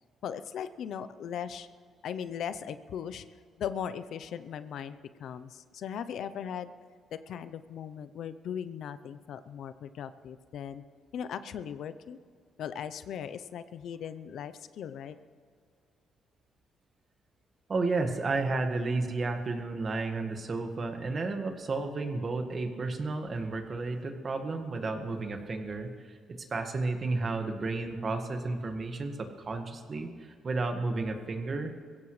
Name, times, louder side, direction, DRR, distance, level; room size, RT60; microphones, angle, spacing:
voice 1, 0.2-1.7 2.0-3.2 3.6-6.7 7.1-10.8 11.1-12.2 12.6-15.2, left 8 dB, 70° left, 13 dB, 0.7 m, -38 dB
voice 2, 17.7-25.9 26.3-30.1 30.4-31.7, right 3 dB, 40° right, 5 dB, 1.7 m, -32 dB
22.0 x 16.0 x 3.3 m, 2.1 s
cardioid pair, 90°, 0 cm